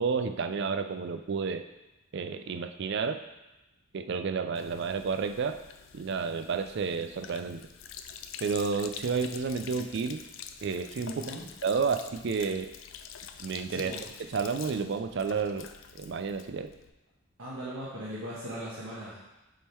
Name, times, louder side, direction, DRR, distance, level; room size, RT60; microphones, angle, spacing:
voice 1, 0.0-1.6 2.1-3.2 3.9-5.6 5.9-7.6 8.4-10.2 10.6-11.3 11.6-12.7 13.4-13.9 14.3-15.7 15.9-16.7, right 5 dB, 50° right, 8 dB, 0.4 m, -31 dB
Sink (filling or washing), 4.5-16.9, left 8 dB, 60° left, 0.4 m, -46 dB
voice 2, 11.1-11.4 13.7-14.0 17.4-19.2, equal, 75° right, -7 dB, 1.2 m, -39 dB
7.1 x 3.7 x 4.4 m, 1.0 s
head